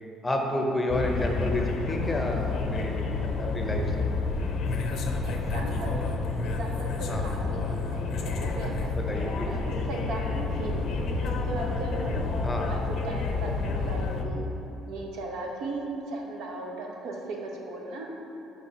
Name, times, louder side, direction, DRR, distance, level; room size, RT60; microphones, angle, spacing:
voice 1, 0.2-4.1 7.1-7.2 8.9-9.5 12.4-12.7, left 1 dB, 15° left, 1 dB, 0.6 m, -30 dB
sound 1, 0.9-14.2, left 3 dB, 60° left, 0.5 m, -29 dB
voice 2, 5.2-6.0 6.4-12.2 12.7-12.8 13.0-14.5 14.8-18.1, right 2 dB, 80° right, 0 dB, 0.8 m, -37 dB
5.8 x 4.6 x 4.0 m, 2.9 s
cardioid pair, 120°, 0 cm